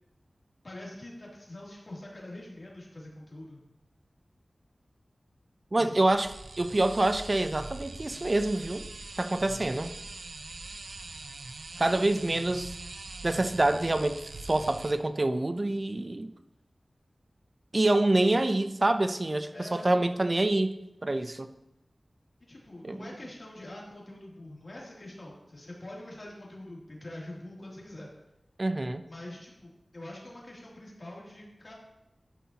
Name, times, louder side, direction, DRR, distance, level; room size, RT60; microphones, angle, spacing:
voice 1, 0.6-3.6 5.8-6.1 11.9-12.2 19.5-20.0 22.5-28.1 29.1-31.7, left 1 dB, 55° left, 2.8 m, -44 dB
voice 2, 5.7-6.3 6.6-8.9 9.2-9.9 11.8-12.8 13.2-16.3 17.7-20.8 21.0-21.5 22.8-23.0 28.6-29.0, right 2 dB, 45° right, 0.5 m, -26 dB
sound 1, 6.1-14.9, right 3 dB, 90° right, 0.6 m, -43 dB
12.5 x 5.6 x 2.9 m
wide cardioid pair, 50°, 0 cm